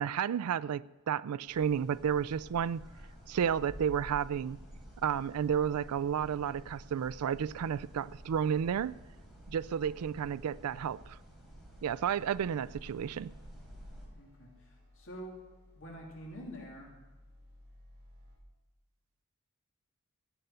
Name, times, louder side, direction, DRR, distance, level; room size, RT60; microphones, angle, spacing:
voice 1, 0.0-2.8 3.3-4.6 5.0-9.0 9.5-11.2 11.8-13.3, right 8 dB, 80° right, 0.4 m, -32 dB
sound 1, 1.5-14.1, equal, ahead, 4.5 m, -51 dB
sound 2, 10.9-18.4, left 1 dB, 50° right, 4.3 m, -60 dB
voice 2, 14.1-14.5 14.9-15.4 15.7-16.9, equal, 60° left, 3.2 m, -46 dB
15.5 x 6.8 x 9.2 m
head